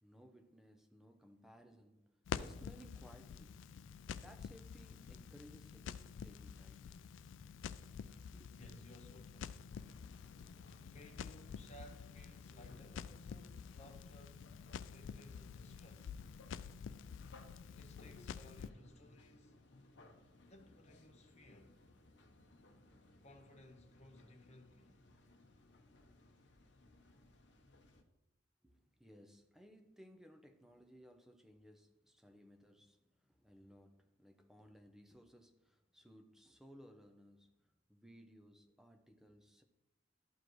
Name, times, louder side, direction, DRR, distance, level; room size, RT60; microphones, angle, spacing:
voice 1, 0.0-3.7 4.2-6.8 8.1-8.5 28.6-39.6, equal, ahead, 0.6 m, -61 dB
Crackle, 2.2-18.7, left 7 dB, 80° left, 0.3 m, -49 dB
voice 2, 8.5-9.7 10.9-14.5 14.8-16.2 17.8-19.5 20.4-21.8 23.2-25.0, left 1 dB, 35° left, 1.0 m, -60 dB
sound 1, 9.7-28.0, left 2 dB, 65° left, 0.8 m, -63 dB
12.5 x 4.9 x 3.1 m
head